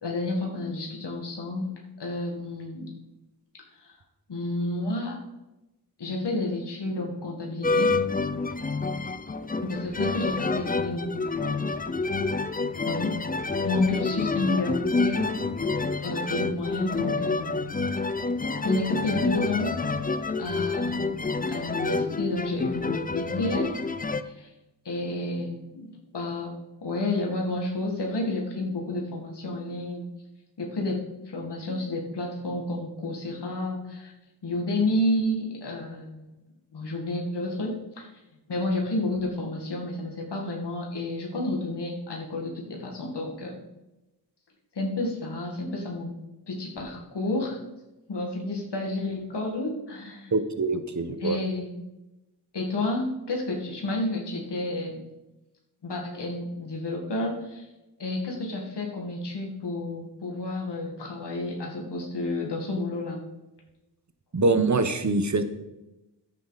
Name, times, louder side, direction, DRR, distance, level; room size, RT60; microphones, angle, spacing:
voice 1, 0.0-1.7 2.0-2.9 3.8-3.9 4.3-5.2 6.0-7.9 9.6-11.3 12.9-13.2 13.6-15.3 16.0-17.5 18.6-19.8 20.4-21.2 21.5-23.7 24.2-24.5 24.8-26.5 26.8-30.1 30.6-34.1 34.4-36.3 36.7-38.1 38.5-43.5 44.8-46.1 46.5-47.6 48.1-50.3 51.2-51.9 52.5-55.0 55.8-57.7 58.0-63.2, left 2 dB, 75° left, -1 dB, 2.2 m, -30 dB
sound 1, 7.6-24.2, left 3 dB, 20° left, 0.6 m, -28 dB
voice 2, 50.3-51.4 64.3-65.4, right 3 dB, 45° right, 9 dB, 1.2 m, -24 dB
9.9 x 8.6 x 4.2 m, 0.98 s
cardioid pair, 50°, 41 cm